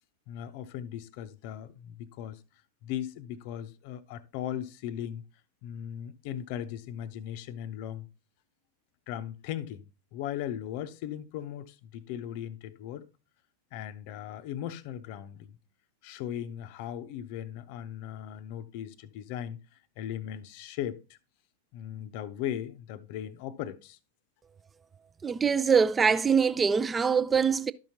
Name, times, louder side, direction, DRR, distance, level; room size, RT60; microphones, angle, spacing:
voice 1, 0.3-2.4 2.8-5.2 5.6-8.1 9.1-9.9 10.1-13.1 13.7-15.6 16.0-19.6 20.0-21.2 21.7-24.0, left 10 dB, 45° left, 0.6 m, -38 dB
voice 2, 25.2-27.7, right 6 dB, 15° right, 0.3 m, -24 dB
12.0 x 5.7 x 2.8 m
figure-of-eight pair, 90°, 0 cm